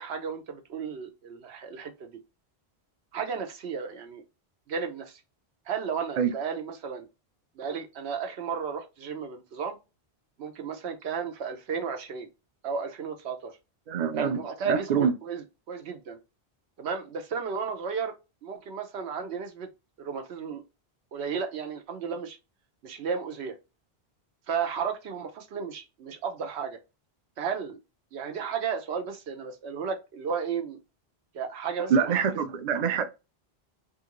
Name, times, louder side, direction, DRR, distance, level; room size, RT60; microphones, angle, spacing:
voice 1, 0.0-2.1 3.1-4.2 4.7-5.2 5.7-7.1 7.6-9.8 10.4-12.3 12.6-13.5 14.2-16.2 16.8-18.1 18.4-19.7 20.0-20.6 21.1-22.4 22.8-23.5 24.5-26.8 27.4-27.8 28.1-30.8 31.3-32.2, right 6 dB, 85° right, 1.0 m, -33 dB
voice 2, 13.9-14.4 14.7-15.1 31.9-33.0, right 6 dB, 50° right, 0.5 m, -25 dB
3.2 x 2.5 x 2.9 m
omnidirectional pair, 1.1 m